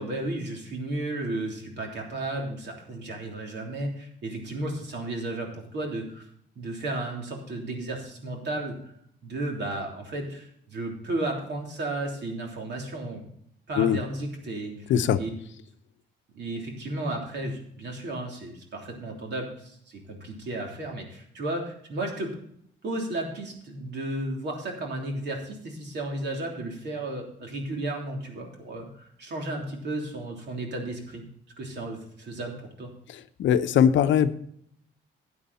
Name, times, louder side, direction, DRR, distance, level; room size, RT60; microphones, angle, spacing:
voice 1, 0.0-6.3 6.5-8.8 9.2-13.2 13.7-15.3 16.3-22.3 22.8-31.2 31.6-32.9, right 2 dB, 60° right, 1 dB, 3.3 m, -33 dB
voice 2, 33.4-34.3, left 9 dB, 70° left, 11 dB, 0.7 m, -20 dB
12.5 x 8.6 x 4.1 m, 0.68 s
cardioid pair, 90°, 20 cm